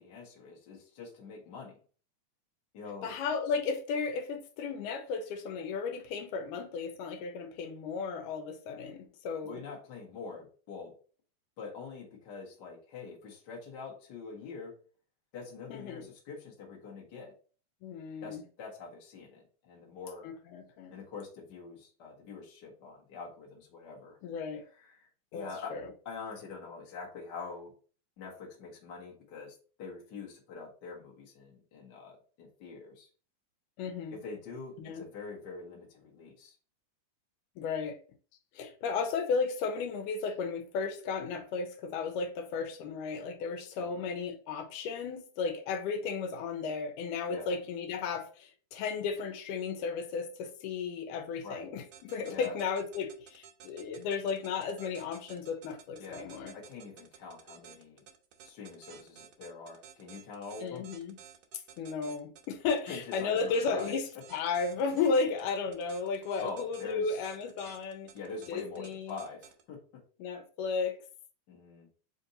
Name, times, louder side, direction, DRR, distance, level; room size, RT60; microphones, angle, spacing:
voice 1, 0.0-1.7 2.7-3.1 9.4-10.9 11.6-14.7 15.3-17.3 18.2-20.3 20.9-24.2 24.8-25.8 26.0-27.7 28.2-33.1 34.1-36.5 43.8-44.1 47.3-47.5 51.4-51.7 52.3-52.6 56.0-58.0 58.4-60.9 62.9-63.9 66.4-67.3 68.1-69.8 71.5-71.9, left 4 dB, 55° left, 1.2 m, -45 dB
voice 2, 3.0-9.6 15.7-16.1 17.8-18.4 20.2-21.0 24.2-24.6 25.3-25.4 25.7-25.9 33.8-34.2 34.8-35.1 37.6-38.0 38.6-56.5 60.6-61.2 61.8-68.1 68.5-69.2 70.2-71.0, left 5 dB, 85° left, 2.2 m, -34 dB
sound 1, 51.9-69.6, right 9 dB, 70° right, 2.0 m, -53 dB
5.1 x 2.7 x 3.9 m
omnidirectional pair, 3.7 m